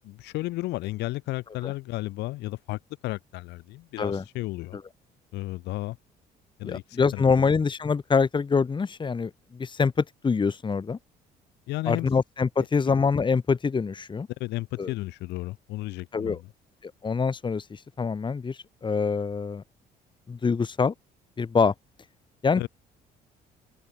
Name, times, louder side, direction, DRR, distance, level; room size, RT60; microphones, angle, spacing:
voice 1, 0.0-4.8 5.3-6.0 6.6-7.5 11.7-12.1 12.6-12.7 14.4-16.5 22.6-22.7, left 19 dB, 85° left, 7.9 m, -33 dB
voice 2, 6.6-11.0 11.8-14.3 14.8-14.9 16.1-16.4 16.8-19.6 20.3-20.9 21.4-21.7 22.4-22.7, left 5 dB, 30° left, 3.4 m, -25 dB
open air
cardioid pair, 110°, 17 cm